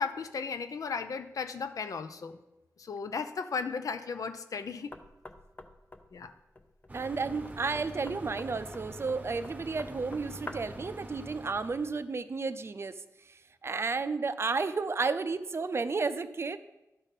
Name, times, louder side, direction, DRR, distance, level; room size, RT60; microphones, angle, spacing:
voice 1, 0.0-2.4 2.8-4.9 6.1-6.3, left 5 dB, 75° left, 9 dB, 0.6 m, -35 dB
Knock, 4.9-10.8, left 2 dB, 30° left, 0.6 m, -48 dB
sound 1, 6.9-12.0, right 2 dB, 25° right, 0.8 m, -45 dB
voice 2, 6.9-12.9 13.6-16.6, right 4 dB, 45° right, 12 dB, 0.5 m, -32 dB
11.0 x 4.1 x 5.4 m, 0.99 s
wide cardioid pair, 90°, 6 cm